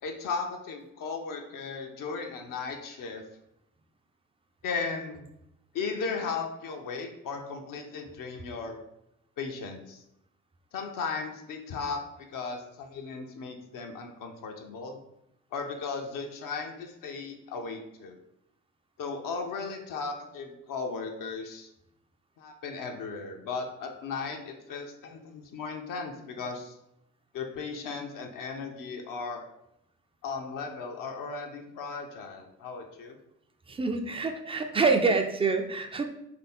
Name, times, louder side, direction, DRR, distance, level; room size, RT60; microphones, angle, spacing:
voice 1, 0.0-3.3 4.6-5.3 5.7-8.8 9.4-10.0 10.7-15.0 15.5-18.2 19.0-21.7 22.4-26.8 27.3-29.5 30.2-33.2, left 4 dB, 50° left, 3 dB, 0.6 m, -36 dB
voice 2, 33.7-36.0, right 4 dB, 15° right, 6 dB, 0.5 m, -26 dB
3.1 x 2.7 x 4.2 m, 0.82 s
figure-of-eight pair, 40°, 40 cm